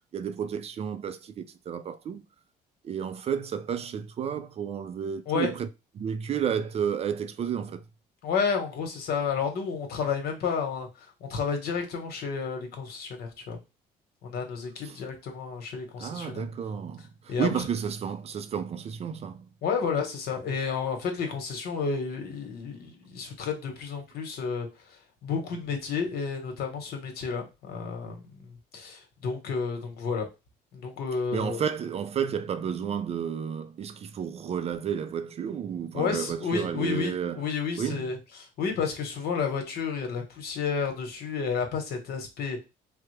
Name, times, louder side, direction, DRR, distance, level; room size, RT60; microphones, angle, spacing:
voice 1, 0.1-2.2 2.8-5.7 6.0-7.8 14.8-15.0 16.0-19.5 31.3-37.4 37.8-38.1, right 8 dB, 40° right, 0.4 m, -31 dB
voice 2, 8.2-10.9 11.2-13.6 14.2-16.4 17.3-17.6 19.6-24.7 25.2-30.3 30.7-31.6 35.9-42.6, left 5 dB, 70° left, 1.1 m, -31 dB
3.4 x 2.0 x 3.2 m
cardioid pair, 110°, 17 cm